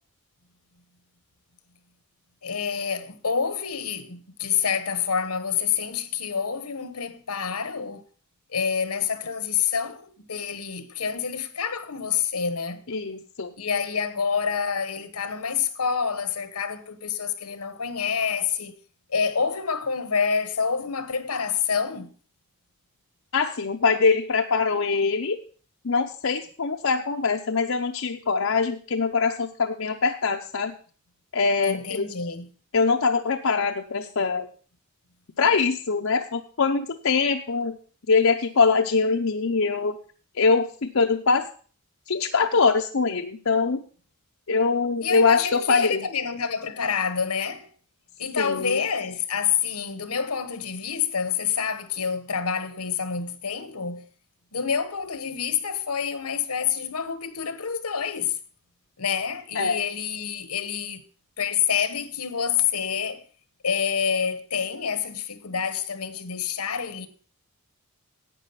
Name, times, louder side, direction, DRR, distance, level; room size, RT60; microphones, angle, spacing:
voice 1, 2.4-8.0 8.5-12.8 13.6-18.7 19.1-22.1 31.6-32.5 45.0-47.7 48.2-54.1 54.5-58.4 59.0-61.0 61.4-63.2 63.6-67.1, left 7 dB, 85° left, 1.2 m, -27 dB
voice 2, 12.9-13.5 23.3-25.4 25.8-30.7 31.3-32.1 32.7-34.5 35.4-37.8 38.1-40.0 40.4-41.5 42.1-43.8 44.5-46.0 48.4-48.8 59.5-59.8, left 4 dB, 65° left, 0.7 m, -23 dB
11.0 x 8.6 x 5.7 m
head